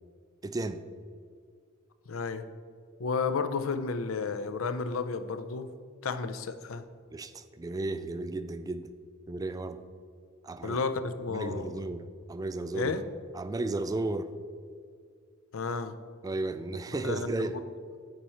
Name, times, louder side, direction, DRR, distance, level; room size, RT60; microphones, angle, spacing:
voice 1, 0.4-0.8 7.1-8.9 9.3-9.8 10.4-10.8 11.3-12.9 13.3-14.3 16.2-17.6, right 2 dB, 15° right, 11 dB, 0.3 m, -34 dB
voice 2, 2.1-2.5 3.0-5.7 6.0-6.8 10.6-11.8 12.7-13.0 15.5-15.9 17.0-17.6, left 4 dB, 70° left, 10 dB, 0.5 m, -32 dB
9.4 x 4.5 x 5.5 m, 2.1 s
head